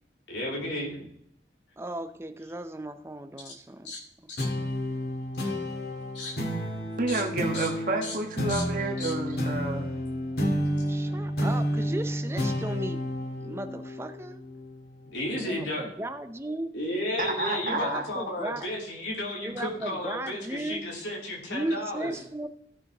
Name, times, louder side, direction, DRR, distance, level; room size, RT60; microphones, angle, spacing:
voice 1, 0.3-1.0 3.8-4.0 4.3-4.5 6.1-6.4 7.1-7.2 7.5-7.7 8.0-8.1 8.5-8.6 9.0-9.1 15.1-15.8 16.7-22.1, left 1 dB, 85° left, -3 dB, 3.1 m, -33 dB
voice 2, 1.8-3.9 4.4-4.5 10.8-13.1 13.4-14.4 15.4-16.7 17.6-18.7 19.4-20.9 21.5-22.5, right 1 dB, 15° right, 9 dB, 0.6 m, -36 dB
sound 1, 4.4-15.2, equal, 60° left, 1.7 m, -31 dB
voice 3, 7.0-9.9 17.2-18.1, right 2 dB, 45° right, 3 dB, 1.4 m, -30 dB
15.5 x 6.7 x 2.9 m, 0.72 s
head